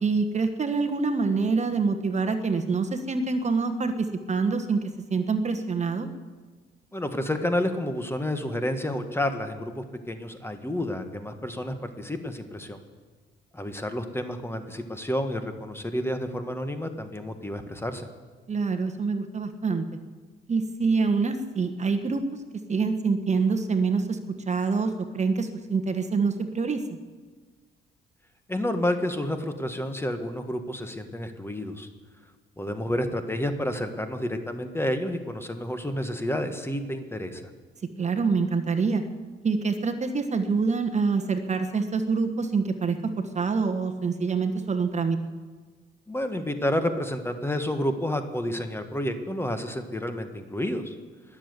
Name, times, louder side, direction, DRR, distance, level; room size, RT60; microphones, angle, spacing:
voice 1, 0.0-4.8 5.1-6.1 18.5-19.8 20.5-22.2 22.7-24.2 24.5-26.8 38.0-39.0 39.4-45.2, right 4 dB, 35° right, 7 dB, 1.2 m, -26 dB
voice 2, 6.9-12.8 13.5-18.1 28.5-31.9 32.6-37.5 46.1-50.9, left 1 dB, 10° left, 7 dB, 1.4 m, -30 dB
21.0 x 7.4 x 8.1 m, 1.4 s
cardioid pair, 90°, 20 cm